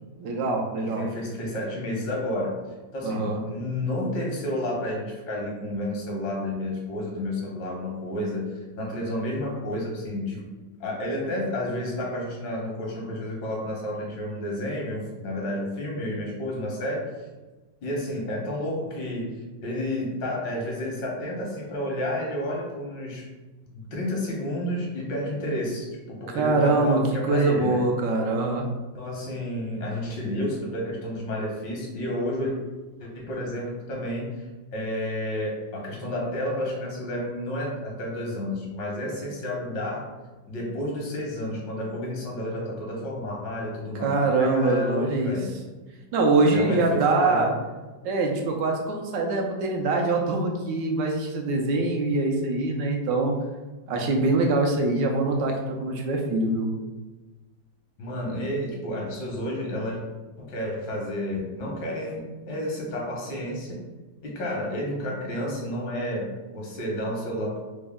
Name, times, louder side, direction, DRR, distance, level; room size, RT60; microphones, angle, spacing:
voice 1, 0.2-1.1 3.0-3.4 26.3-28.7 44.0-45.4 46.1-47.5 48.0-53.4 53.9-56.7, right 3 dB, 80° right, 2 dB, 1.3 m, -24 dB
voice 2, 0.8-2.6 2.9-10.4 10.8-17.1 17.8-19.3 19.6-23.3 23.6-27.8 28.9-32.5 33.0-34.5 34.7-40.1 40.5-45.6 46.5-47.5 58.0-60.0 60.4-63.8 64.2-67.6, left 1 dB, 80° left, -2 dB, 1.6 m, -31 dB
4.0 x 2.1 x 3.5 m, 1.2 s
omnidirectional pair, 1.9 m